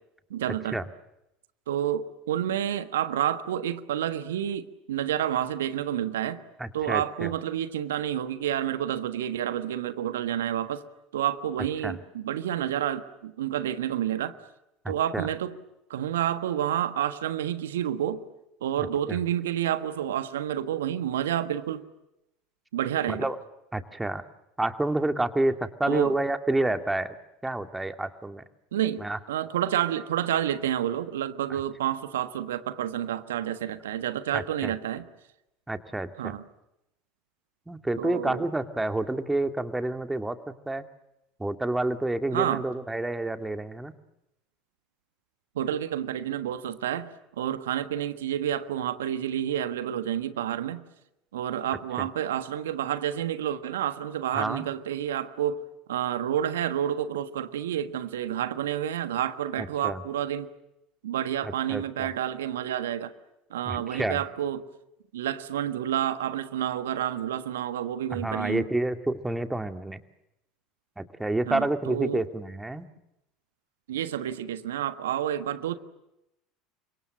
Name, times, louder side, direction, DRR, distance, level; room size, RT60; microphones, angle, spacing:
voice 1, 0.3-0.8 1.7-6.4 6.7-10.8 11.1-14.3 14.9-15.5 15.9-18.2 18.6-21.8 22.7-23.3 25.9-26.1 28.7-29.0 29.3-35.0 36.2-36.4 38.0-38.4 42.3-42.6 45.5-47.1 47.4-50.8 51.3-55.6 55.9-60.5 61.0-63.1 63.5-64.6 65.1-68.6 71.5-72.2 73.9-75.8, right 10 dB, 75° right, 11 dB, 1.5 m, -29 dB
voice 2, 6.6-7.3 11.8-11.9 14.8-15.3 18.8-19.2 23.1-23.4 23.7-24.2 24.6-27.1 27.4-28.4 29.0-29.2 34.3-34.7 35.7-36.4 37.7-40.4 40.7-40.8 41.4-43.9 52.0-52.1 54.3-54.7 59.6-60.0 61.4-62.1 63.7-64.2 68.1-70.0 71.0-72.9, right 2 dB, 10° right, 8 dB, 2.3 m, -29 dB
30.0 x 25.5 x 7.6 m, 0.86 s
figure-of-eight pair, 70°, 0 cm